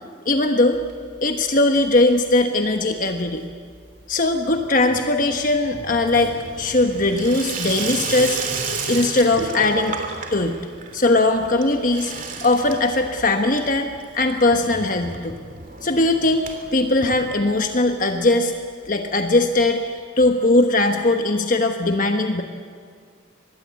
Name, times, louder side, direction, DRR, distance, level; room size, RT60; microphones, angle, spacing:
voice 1, 0.2-0.8 1.2-3.4 4.1-6.3 6.6-8.4 8.9-10.0 10.3-10.6 10.9-12.1 12.4-15.4 15.8-18.5 18.9-22.4, left 2 dB, 40° left, 5 dB, 1.3 m, -20 dB
Water tap faucet / Sink (filling or washing), 0.7-1.5 1.8-2.3 2.6-17.9 18.2-18.3 18.5-18.6 18.8-18.9 20.0-20.1, right 4 dB, 40° right, 3.0 m, -34 dB
24.5 x 21.0 x 8.4 m, 2.1 s
head